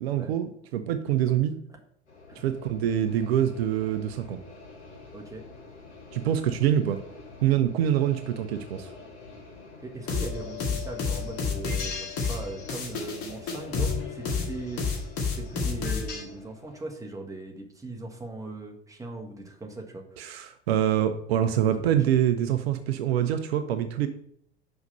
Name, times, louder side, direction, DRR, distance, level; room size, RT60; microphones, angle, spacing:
voice 1, 0.0-1.5 2.4-4.4 6.1-7.0 7.4-8.9 20.2-24.1, right 10 dB, 60° right, 9 dB, 0.6 m, -25 dB
sound 1, 2.1-16.8, left 3 dB, 75° left, 2.0 m, -48 dB
voice 2, 5.1-5.4 9.8-14.9 15.3-20.4 21.8-22.0, right 2 dB, 10° right, 0 dB, 1.5 m, -39 dB
sound 2, 10.1-16.2, left 5 dB, 40° left, 1.9 m, -30 dB
5.8 x 5.6 x 5.4 m, 0.68 s
figure-of-eight pair, 70°, 34 cm